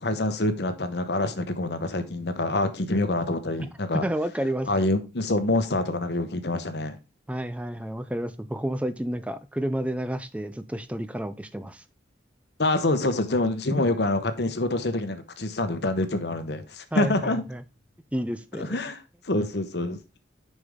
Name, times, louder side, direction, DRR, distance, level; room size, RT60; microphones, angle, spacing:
voice 1, 0.0-4.0 4.7-7.0 12.6-17.4 18.5-19.0 19.2-20.0, left 2 dB, 70° left, 0.9 m, -26 dB
voice 2, 3.9-4.7 7.3-11.8 13.7-13.8 16.9-17.6 18.1-18.8, right 1 dB, 5° right, 0.4 m, -30 dB
6.7 x 5.4 x 3.6 m
head